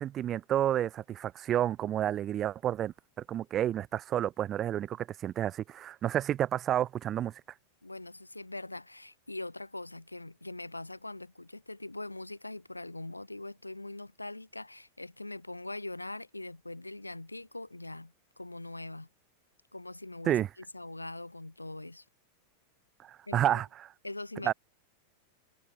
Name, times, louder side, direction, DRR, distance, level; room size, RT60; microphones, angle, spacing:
voice 1, 0.0-7.4 20.3-20.5 23.0-23.9 24.4-24.5, right 11 dB, 30° right, 0.8 m, -30 dB
voice 2, 7.8-19.1 19.7-22.0 23.3-23.6 24.0-24.5, left 2 dB, 85° left, 1.9 m, -42 dB
figure-of-eight pair, 90°, 0 cm